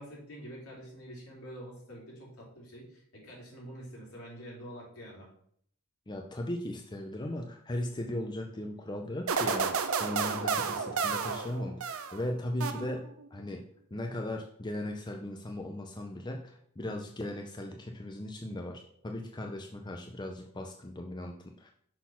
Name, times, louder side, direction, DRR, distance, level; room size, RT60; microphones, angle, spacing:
voice 1, 0.0-5.3, equal, 70° left, -4 dB, 3.0 m, -46 dB
voice 2, 6.1-21.7, left 1 dB, 20° left, 2 dB, 0.5 m, -38 dB
sound 1, 9.3-12.2 12.6-13.3, right 5 dB, 65° right, 0.6 m, -31 dB
6.2 x 3.9 x 5.7 m, 0.65 s
head